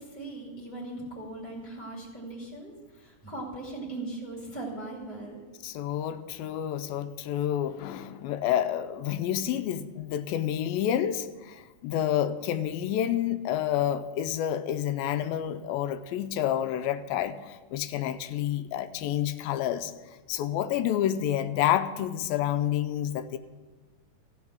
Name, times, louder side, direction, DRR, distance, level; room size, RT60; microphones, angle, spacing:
voice 1, 0.0-5.4, right 2 dB, 5° left, -3 dB, 1.5 m, -39 dB
voice 2, 5.6-19.9 20.3-23.4, left 11 dB, 85° left, 11 dB, 2.4 m, -29 dB
14.5 x 5.6 x 7.7 m, 1.3 s
omnidirectional pair, 4.1 m